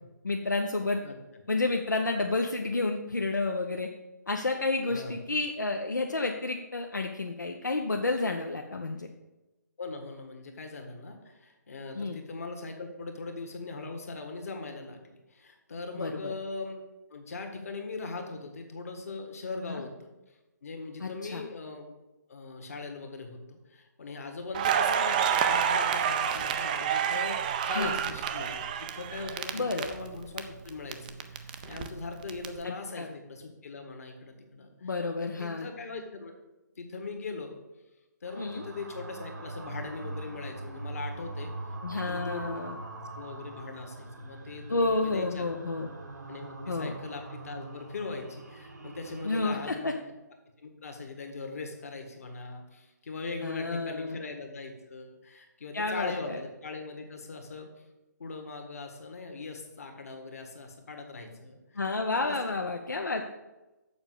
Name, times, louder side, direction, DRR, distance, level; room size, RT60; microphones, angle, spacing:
voice 1, 0.2-1.0 1.5-3.9 4.3-9.1 11.9-12.2 15.9-16.3 19.7-19.8 21.0-21.4 27.7-27.9 29.5-29.9 32.6-33.1 34.8-35.7 38.4-38.6 41.8-42.8 44.7-45.9 46.7-47.0 49.2-49.9 53.4-54.2 55.7-56.4 61.7-63.3, left 3 dB, 75° left, 2 dB, 0.8 m, -30 dB
voice 2, 9.8-16.8 17.1-20.1 20.6-21.9 22.3-34.9 35.2-36.3 36.8-37.6 38.2-41.5 41.9-42.6 43.2-45.5 46.3-50.0 50.6-57.7 58.2-61.8 62.1-62.4, left 3 dB, 50° left, 5 dB, 1.6 m, -40 dB
Crackle, 24.5-30.4 30.7-32.5, right 8 dB, 25° right, 0.5 m, -28 dB
sound 1, 38.3-49.6, right 2 dB, 65° right, 1.3 m, -42 dB
7.1 x 5.4 x 7.0 m, 1.0 s
figure-of-eight pair, 140°, 10 cm